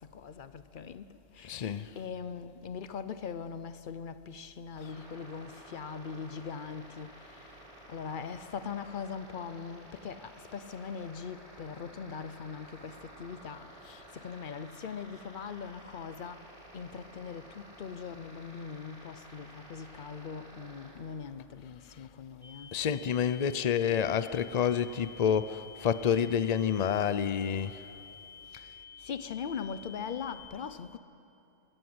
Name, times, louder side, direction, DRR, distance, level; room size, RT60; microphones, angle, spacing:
voice 1, 0.1-1.1 1.4-7.2 7.9-13.7 14.1-16.4 16.7-22.7 28.5-28.7 29.0-31.0, left 6 dB, 50° left, 0.7 m, -41 dB
voice 2, 1.5-1.9 13.9-14.0 22.7-27.8, left 8 dB, 80° left, 0.3 m, -28 dB
sound 1, 4.7-20.9, right 1 dB, 20° left, 5.8 m, -52 dB
sound 2, 22.4-30.4, left 7 dB, 40° right, 2.6 m, -50 dB
22.5 x 17.0 x 7.9 m
omnidirectional pair, 1.5 m